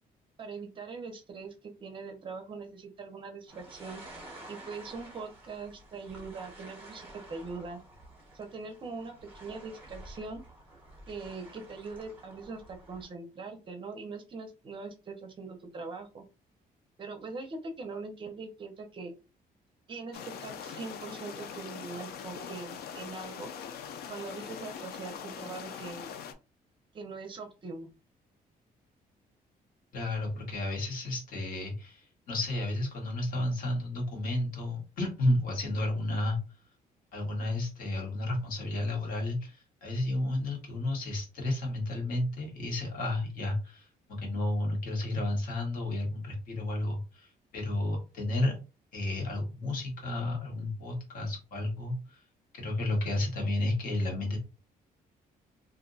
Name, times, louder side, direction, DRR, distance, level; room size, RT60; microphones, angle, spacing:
voice 1, 0.4-4.0 4.5-7.8 8.3-10.4 11.1-16.2 17.0-19.1 19.9-23.5 24.1-26.1 26.9-27.9, right 4 dB, 30° right, 5 dB, 0.5 m, -42 dB
sound 1, 3.5-13.1, right 1 dB, 10° right, 1.1 m, -50 dB
sound 2, 20.1-26.3, left 7 dB, 85° left, 0.5 m, -42 dB
voice 2, 29.9-36.4 37.1-48.5 48.9-52.2 52.5-54.4, left 1 dB, 65° left, 0 dB, 1.3 m, -32 dB
2.5 x 2.1 x 3.9 m, 0.31 s
cardioid pair, 180°, 16 cm